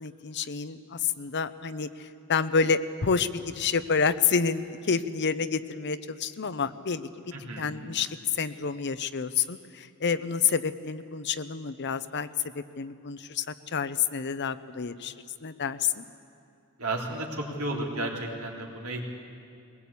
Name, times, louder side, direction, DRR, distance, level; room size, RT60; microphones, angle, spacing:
voice 1, 0.0-7.1 7.6-12.3 12.5-13.4 13.7-15.1 15.4-16.0, left 6 dB, 50° left, 13 dB, 0.7 m, -28 dB
voice 2, 7.3-7.8 16.8-19.0, right 2 dB, 75° right, -1 dB, 3.5 m, -33 dB
21.5 x 20.0 x 8.5 m, 2.5 s
head